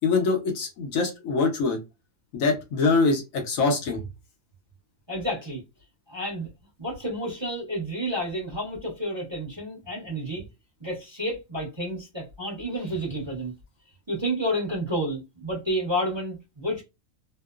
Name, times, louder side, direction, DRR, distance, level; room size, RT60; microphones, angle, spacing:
voice 1, 0.0-1.8 2.3-4.0, left 4 dB, 70° left, 1.1 m, -24 dB
voice 2, 5.1-5.6 6.1-6.5 6.8-10.4 10.8-13.5 14.1-16.8, equal, 25° right, 0.8 m, -30 dB
2.8 x 2.0 x 2.3 m
omnidirectional pair, 1.5 m